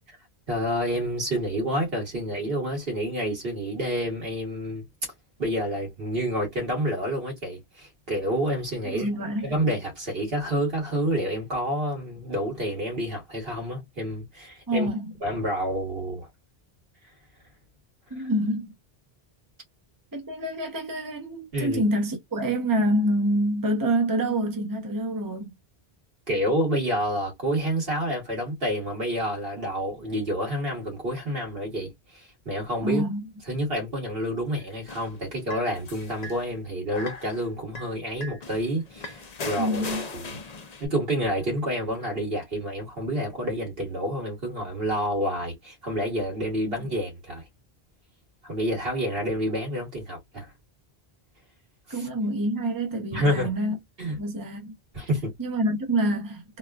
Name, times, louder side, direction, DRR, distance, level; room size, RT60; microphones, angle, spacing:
voice 1, 0.5-4.8 5.4-9.1 9.4-14.9 15.2-16.3 18.2-18.3 21.5-21.8 26.3-33.0 33.5-40.4 40.8-47.4 48.4-50.5 51.9-52.1 53.1-53.5 54.0-54.2 54.9-55.3, equal, 65° right, 2.0 m, -28 dB
voice 2, 8.8-9.5 14.7-15.1 18.1-18.7 20.1-25.5 32.8-33.2 39.6-40.1 51.9-53.8 54.2-54.7 55.4-56.6, right 1 dB, 20° right, 0.8 m, -26 dB
sound 1, 34.6-36.4 36.9-37.5 37.7-37.9 38.2-40.9, left 3 dB, 45° left, 0.7 m, -38 dB
4.0 x 2.3 x 2.3 m
omnidirectional pair, 1.1 m